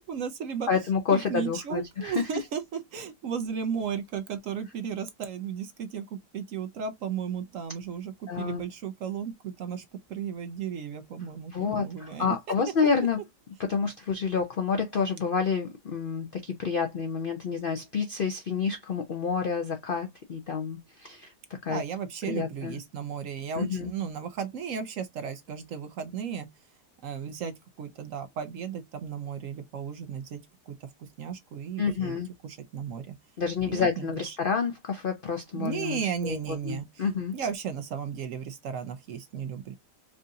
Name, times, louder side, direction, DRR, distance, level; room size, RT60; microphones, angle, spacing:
voice 1, 0.0-0.7 1.1-12.4 21.7-26.5 27.0-30.4 30.7-33.2 33.7-34.4 35.5-37.0 37.3-39.7, right 7 dB, 65° right, 0.8 m, -35 dB
voice 2, 0.7-2.3 8.3-8.6 11.5-13.2 13.7-21.3 21.6-21.8 22.3-22.8 23.6-23.9 31.8-32.3 33.4-36.4 36.6-37.3, left 5 dB, 85° left, 0.4 m, -29 dB
4.7 x 2.6 x 2.5 m
omnidirectional pair, 1.8 m